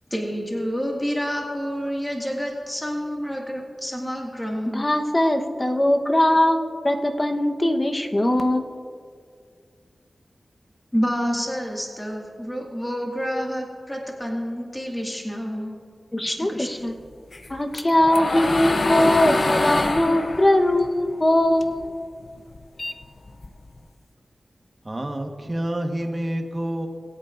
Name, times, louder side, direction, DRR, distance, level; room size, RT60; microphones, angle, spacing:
voice 1, 0.1-4.8 10.9-15.8 16.2-16.7, equal, 10° left, -1 dB, 2.1 m, -28 dB
voice 2, 4.7-6.6 6.8-8.7 16.1-16.9 17.5-21.9, left 1 dB, 30° left, 4 dB, 1.1 m, -21 dB
sound 1, 17.3-21.9 22.2-23.8, left 2 dB, 60° left, 0.6 m, -25 dB
voice 3, 24.8-26.9, right 1 dB, 35° right, 3 dB, 1.4 m, -28 dB
21.5 x 8.5 x 2.6 m, 2.2 s
cardioid pair, 45°, 0 cm